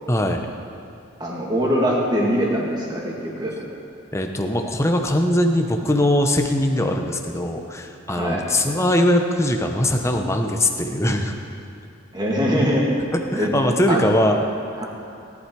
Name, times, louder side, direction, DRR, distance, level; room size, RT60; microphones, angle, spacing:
voice 1, 0.1-0.5 4.1-11.3 13.3-14.4, left 1 dB, 15° left, 3 dB, 0.9 m, -21 dB
voice 2, 1.2-3.7 8.1-8.5 12.1-12.9 13.3-13.6 13.9-14.1 14.8-14.9, equal, 20° right, -3 dB, 2.3 m, -22 dB
18.0 x 11.0 x 4.7 m, 2.5 s
head